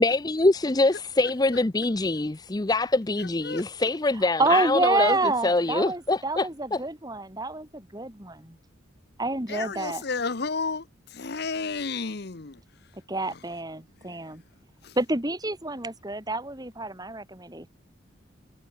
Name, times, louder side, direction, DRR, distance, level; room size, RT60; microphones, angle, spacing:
voice 1, 0.0-5.1 5.4-6.5, left 2 dB, 20° left, 0.5 m, -24 dB
voice 2, 3.2-3.7 9.5-12.9 13.3-13.4 14.0-14.4 14.8-15.0, left 4 dB, 55° left, 0.9 m, -33 dB
voice 3, 4.1-8.6 9.2-10.0 13.1-14.4 15.0-17.7, right 2 dB, 20° right, 2.6 m, -28 dB
head